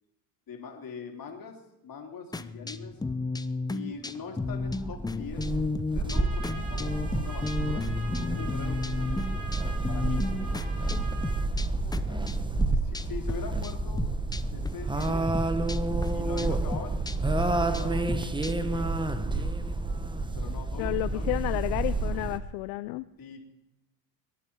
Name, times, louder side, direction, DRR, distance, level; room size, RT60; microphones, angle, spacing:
voice 1, 0.5-2.9 3.7-5.5 5.9-9.1 9.9-10.3 12.1-12.3 12.7-14.0 14.5-15.3 16.1-17.0 17.4-19.5 20.3-21.6 23.2-23.4, left 6 dB, 40° left, 2 dB, 3.4 m, -43 dB
sound 1, 2.3-13.4 13.6-14.7 15.0-18.8, left 3 dB, 10° left, 0.7 m, -34 dB
sound 2, 4.4-22.4, right 2 dB, 10° right, 1.1 m, -30 dB
Trumpet, 6.1-11.5, right 3 dB, 40° right, 6.0 m, -44 dB
voice 2, 20.8-23.0, left 20 dB, 75° left, 12 dB, 0.7 m, -31 dB
21.5 x 11.5 x 4.7 m, 0.92 s
supercardioid pair, 95°, 50 cm